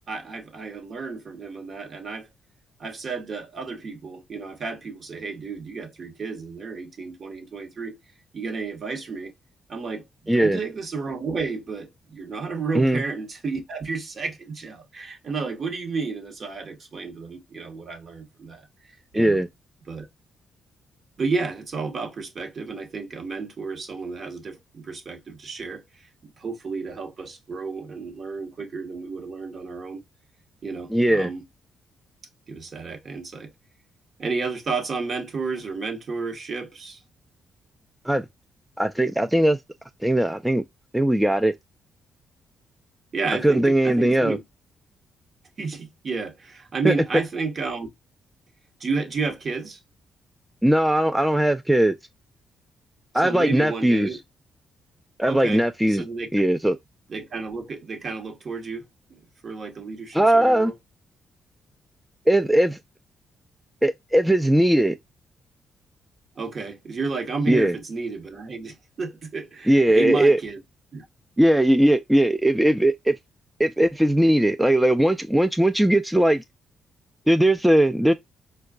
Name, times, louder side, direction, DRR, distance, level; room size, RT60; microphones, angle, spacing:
voice 1, 0.1-2.3 2.8-8.0 8.3-9.3 9.7-10.0 10.3-18.7 19.1-19.4 19.9-20.1 21.2-30.0 30.6-31.4 32.5-33.5 34.2-37.0 43.1-44.4 45.6-47.9 48.8-49.8 53.2-54.2 55.3-56.3 57.1-60.7 66.4-70.6 70.9-71.1, right 4 dB, 50° right, 1.0 m, -31 dB
voice 2, 10.3-10.6 12.7-13.0 19.1-19.5 30.9-31.3 38.1-38.3 38.8-39.6 40.0-40.6 40.9-41.5 43.4-44.4 46.8-46.9 50.6-51.9 53.1-54.1 55.2-56.0 56.3-56.8 60.1-60.7 62.3-62.8 63.8-65.0 67.5-67.8 69.7-70.4 71.4-73.1 73.6-76.4 77.3-78.1, right 1 dB, 5° right, 0.3 m, -19 dB
4.4 x 2.2 x 2.3 m
cardioid pair, 75°, 0 cm